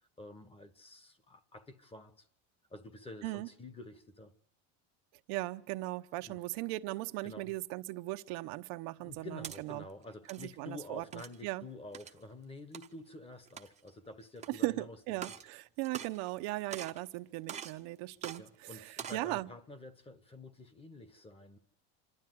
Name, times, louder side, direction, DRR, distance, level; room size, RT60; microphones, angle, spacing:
voice 1, 0.2-2.3 2.7-4.3 6.2-6.4 7.2-7.5 9.0-15.2 18.4-21.6, left 2 dB, 15° left, 1.1 m, -49 dB
voice 2, 5.3-9.8 10.3-11.6 14.5-19.5, right 19 dB, 85° right, 1.0 m, -38 dB
sound 1, 9.1-9.6 10.1-10.5 11.1-11.4 11.9-12.2 12.7-12.9 13.5-13.9 14.4-14.5 15.1-15.5 15.8-16.4 16.7-17.0 17.5-17.8 18.2-18.4 18.9-19.3, right 8 dB, 20° right, 0.7 m, -44 dB
26.5 x 12.0 x 9.4 m
cardioid pair, 165°, 36 cm